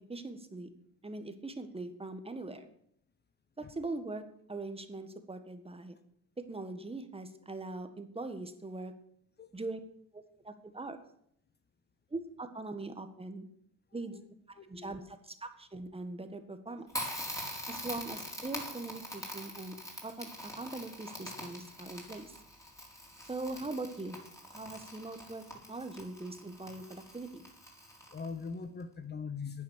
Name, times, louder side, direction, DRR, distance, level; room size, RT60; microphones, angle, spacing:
voice 1, 0.1-0.7 1.0-2.7 3.6-4.2 4.5-5.9 6.4-8.9 9.5-9.8 10.1-11.0 12.1-13.5 13.9-14.2 14.7-17.1 17.7-19.8 20.0-22.4 23.3-24.2 24.5-27.4, right 2 dB, 20° right, 8 dB, 1.6 m, -41 dB
voice 2, 14.6-15.1 28.1-29.6, left 5 dB, 35° left, 11 dB, 1.2 m, -42 dB
Crackle, 16.9-28.5, equal, 10° left, 4.6 m, -44 dB
11.0 x 9.4 x 6.6 m, 0.69 s
cardioid pair, 90°, 30 cm